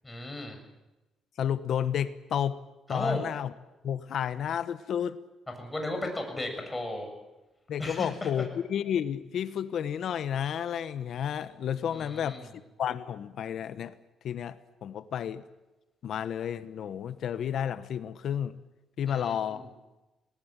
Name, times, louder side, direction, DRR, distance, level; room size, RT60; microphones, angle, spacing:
voice 1, 0.0-0.6 2.9-3.2 5.6-7.1 7.8-8.5 11.9-12.5 19.1-19.7, left 1 dB, 15° left, 3 dB, 7.2 m, -35 dB
voice 2, 1.4-2.6 2.9-3.5 3.8-5.2 7.7-12.5 12.8-13.9 14.2-15.4 16.0-18.6 19.0-19.6, left 9 dB, 65° left, 13 dB, 1.1 m, -31 dB
20.0 x 19.5 x 8.9 m, 1.0 s
cardioid pair, 95°, 0 cm